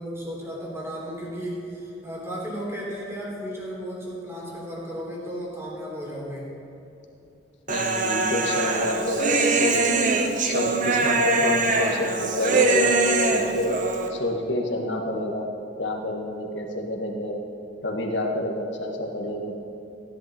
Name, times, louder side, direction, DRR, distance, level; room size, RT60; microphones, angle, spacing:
voice 1, 0.0-6.5, equal, 15° right, -4 dB, 3.3 m, -34 dB
voice 2, 7.7-10.0 10.4-13.8 14.1-15.5 15.8-17.4 17.8-19.5, left 1 dB, 75° left, 1 dB, 1.7 m, -28 dB
Human voice, 7.7-14.1, right 3 dB, 45° right, 1.1 m, -23 dB
17.0 x 11.0 x 4.4 m, 2.9 s
head